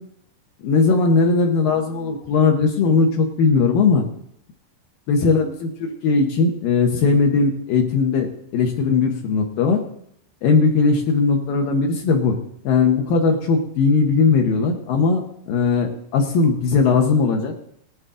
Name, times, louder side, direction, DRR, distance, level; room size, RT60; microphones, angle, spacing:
voice 1, 0.6-4.1 5.1-5.7 6.0-9.8 10.4-12.4 12.6-17.5, left 4 dB, 75° left, 2 dB, 2.1 m, -18 dB
18.0 x 9.5 x 3.8 m, 0.69 s
omnidirectional pair, 5.5 m